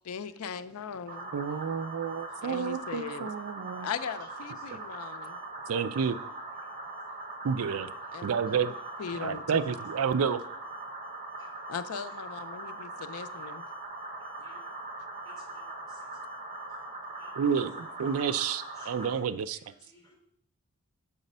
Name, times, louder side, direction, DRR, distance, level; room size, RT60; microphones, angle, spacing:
voice 1, 0.0-1.3 2.4-3.3 3.8-5.4 8.1-8.3 9.0-9.8 11.7-13.6, left 7 dB, 85° left, 12 dB, 0.4 m, -38 dB
sound 1, 1.1-19.1, right 2 dB, 35° right, 1.0 m, -41 dB
voice 2, 1.3-3.9 5.7-6.2 7.4-7.9 8.2-8.7 9.1-10.4 17.4-19.6, right 6 dB, 75° right, 12 dB, 0.4 m, -30 dB
voice 3, 15.2-16.1 17.2-17.3 18.0-18.2 18.8-20.2, left 2 dB, 15° left, -3 dB, 2.0 m, -59 dB
6.8 x 4.0 x 5.4 m, 0.70 s
head